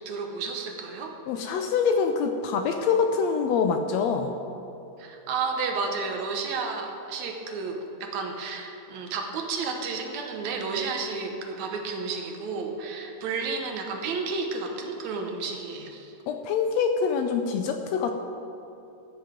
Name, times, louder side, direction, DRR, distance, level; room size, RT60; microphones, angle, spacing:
voice 1, 0.1-1.1 5.0-16.1, right 4 dB, 75° right, 3 dB, 2.3 m, -32 dB
voice 2, 1.3-4.3 16.3-18.1, left 6 dB, 80° left, 6 dB, 1.6 m, -25 dB
13.0 x 8.0 x 5.1 m, 2.8 s
omnidirectional pair, 3.4 m